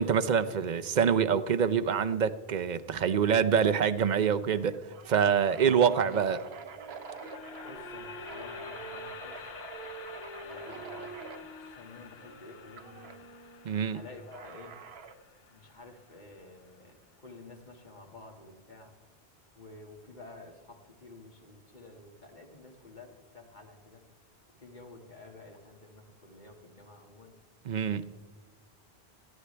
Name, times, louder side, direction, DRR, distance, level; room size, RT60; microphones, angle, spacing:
voice 1, 0.0-6.4 13.6-14.0 27.6-28.2, right 7 dB, 50° right, 0.7 m, -26 dB
sound 1, 4.6-7.8 8.2-11.4 12.8-13.2 14.3-15.2, right 6 dB, 80° right, 1.1 m, -47 dB
Wind instrument woodwind instrument, 5.7-14.0, right 2 dB, 30° left, 4.2 m, -48 dB
sound 2, 6.8-16.9, left 7 dB, 75° left, 1.0 m, -49 dB
voice 2, 7.7-9.6 10.4-13.2 13.9-14.8 15.5-18.9 19.5-24.1 24.6-27.3, left 2 dB, 45° left, 2.2 m, -50 dB
21.0 x 15.0 x 3.4 m
omnidirectional pair, 1.0 m